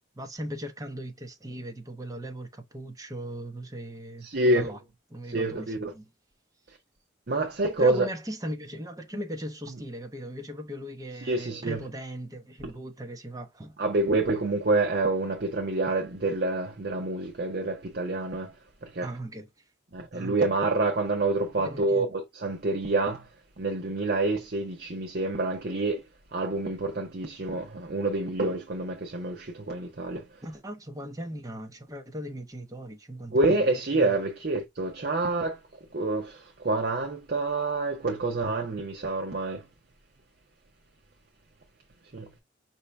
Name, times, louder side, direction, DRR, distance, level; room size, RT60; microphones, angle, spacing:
voice 1, 0.1-4.8 5.1-6.1 7.8-13.8 19.0-19.5 20.1-20.4 21.5-22.1 30.4-34.2, equal, 20° right, 0.8 m, -38 dB
voice 2, 4.2-4.7 5.3-5.9 7.3-8.1 11.2-11.8 12.6-12.7 13.8-18.5 18.8-19.1 19.9-23.3 23.6-26.0 26.3-30.2 33.3-35.6 35.9-39.6 42.1-42.3, right 2 dB, 55° right, 0.7 m, -27 dB
5.4 x 2.8 x 3.3 m
head